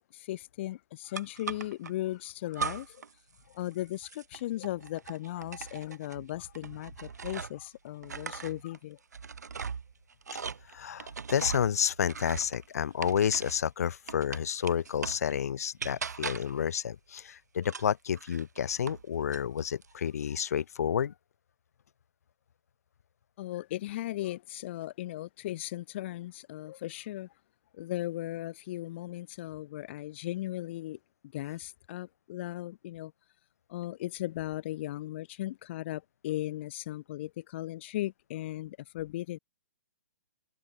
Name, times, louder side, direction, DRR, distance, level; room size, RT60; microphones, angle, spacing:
voice 1, 0.0-3.0 3.5-9.0 23.4-27.3 27.7-31.0 31.3-33.1 33.7-39.4, left 15 dB, 45° left, 1.0 m, -37 dB
sound 1, 1.1-1.9 2.5-3.1 3.4-7.7 8.0-13.7 14.1-15.3 15.8-16.6 17.6-19.0 19.3-19.9, right 6 dB, 80° right, 6.0 m, -40 dB
voice 2, 10.7-21.1, left 8 dB, 65° left, 1.3 m, -30 dB
hypercardioid pair, 145°, 9 cm